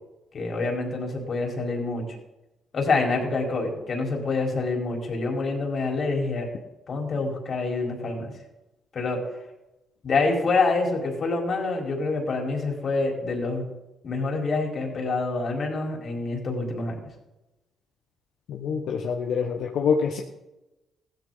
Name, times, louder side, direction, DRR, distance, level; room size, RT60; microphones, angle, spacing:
voice 1, 0.3-2.0 2.7-6.5 6.9-8.3 8.9-9.2 10.0-13.7 14.0-17.1, left 3 dB, 50° left, 1 dB, 4.4 m, -26 dB
voice 2, 18.5-20.2, left 6 dB, 75° left, 2 dB, 1.3 m, -26 dB
16.0 x 13.5 x 4.0 m, 0.96 s
cardioid pair, 90°, 0 cm